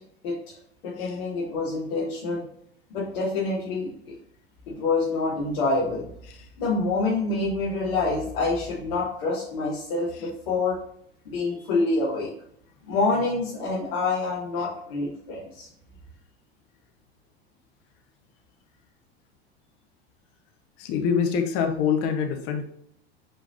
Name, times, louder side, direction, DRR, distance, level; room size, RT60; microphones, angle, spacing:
voice 1, 0.2-0.5 0.8-2.4 2.9-4.1 4.7-6.0 6.6-10.8 11.2-12.3 12.9-15.7, left 3 dB, 60° left, -9 dB, 2.9 m, -27 dB
voice 2, 20.8-22.7, left 7 dB, 45° left, 5 dB, 1.4 m, -25 dB
9.0 x 4.9 x 2.8 m, 0.69 s
figure-of-eight pair, 80°, 32 cm